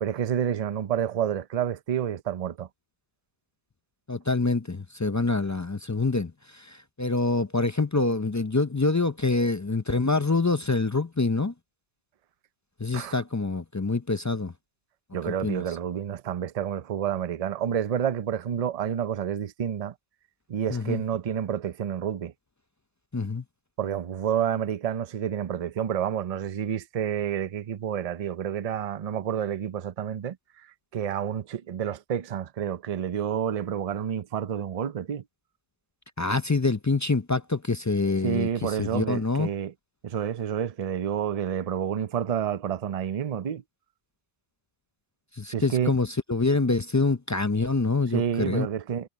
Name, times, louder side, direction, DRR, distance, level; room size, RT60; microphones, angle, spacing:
voice 1, 0.0-2.7 12.9-13.2 15.1-19.9 20.5-22.3 23.8-30.7 30.9-35.2 38.2-39.7 40.0-43.6 45.5-45.9 48.1-49.1, right 9 dB, 45° right, 0.6 m, -29 dB
voice 2, 4.1-11.5 12.8-14.5 15.4-15.6 20.7-21.0 23.1-23.4 36.2-39.5 45.3-48.7, left 3 dB, 30° left, 0.3 m, -26 dB
omnidirectional pair, 1.1 m